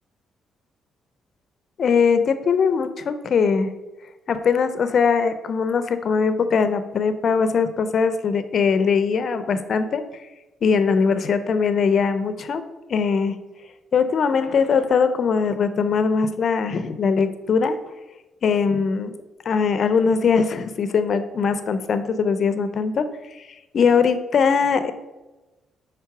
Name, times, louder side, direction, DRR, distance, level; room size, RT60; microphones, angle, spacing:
voice 1, 1.8-3.7 4.3-10.0 10.6-12.6 12.9-13.4 13.9-17.8 18.4-19.1 19.5-23.1 23.3-23.4 23.7-24.9, left 5 dB, 55° left, 10 dB, 0.5 m, -21 dB
5.7 x 3.5 x 5.9 m, 1.1 s
cardioid pair, 90°, 0 cm